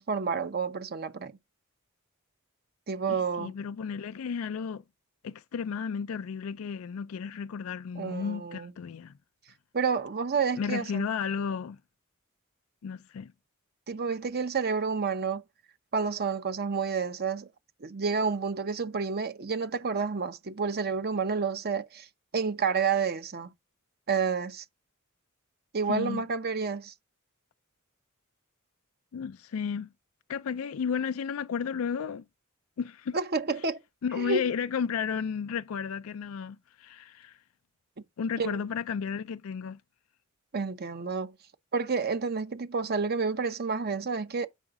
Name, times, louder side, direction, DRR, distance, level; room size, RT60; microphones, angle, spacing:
voice 1, 0.0-1.3 2.9-3.5 8.0-8.7 9.7-11.0 13.9-15.4 15.9-17.5 17.8-22.1 22.3-23.5 24.1-24.6 25.7-26.9 33.1-33.8 34.2-34.4 38.4-38.6 40.5-41.3 41.7-44.5, right 5 dB, 50° right, 0.7 m, -29 dB
voice 2, 3.1-4.8 5.2-9.1 10.6-11.8 12.8-13.3 25.9-26.2 29.1-29.9 30.3-32.2 32.8-33.2 34.0-37.4 38.2-39.8, left 6 dB, 80° left, 0.4 m, -33 dB
8.1 x 4.9 x 3.6 m
head